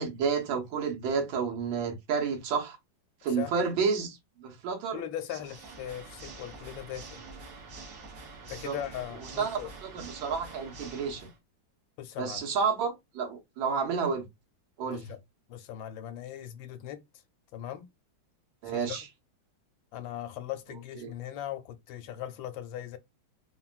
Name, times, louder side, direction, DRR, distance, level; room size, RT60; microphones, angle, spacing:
voice 1, 0.0-2.8 3.2-5.0 8.6-8.8 9.4-11.3 12.2-14.3 14.8-15.1 18.6-19.0 21.0-21.1, right 5 dB, 80° right, 1.6 m, -30 dB
voice 2, 4.9-7.2 8.5-9.7 12.0-12.5 14.9-15.2 15.5-17.0 17.5-17.9 18.6-19.0 19.9-23.0, left 11 dB, 80° left, 1.3 m, -39 dB
Water / Mechanisms, 5.4-11.4, right 3 dB, 60° right, 0.9 m, -46 dB
3.6 x 2.2 x 2.3 m
omnidirectional pair, 2.1 m